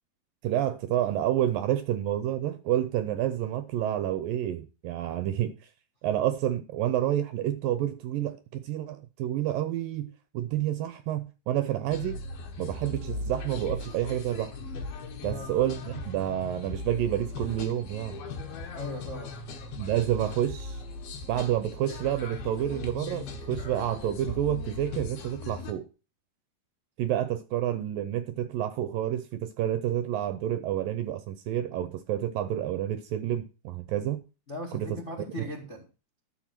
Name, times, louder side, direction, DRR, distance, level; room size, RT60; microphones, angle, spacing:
voice 1, 0.4-5.6 6.0-12.2 12.6-14.5 15.2-18.2 19.8-20.8 21.3-25.9 27.0-34.2 34.7-35.0 35.4-35.5, right 12 dB, 75° right, 2.2 m, -29 dB
sound 1, 11.9-25.7, left 3 dB, 70° left, 3.3 m, -38 dB
voice 2, 18.7-19.3 34.5-35.9, left 1 dB, 30° left, 1.3 m, -39 dB
12.0 x 6.8 x 6.0 m
omnidirectional pair, 4.6 m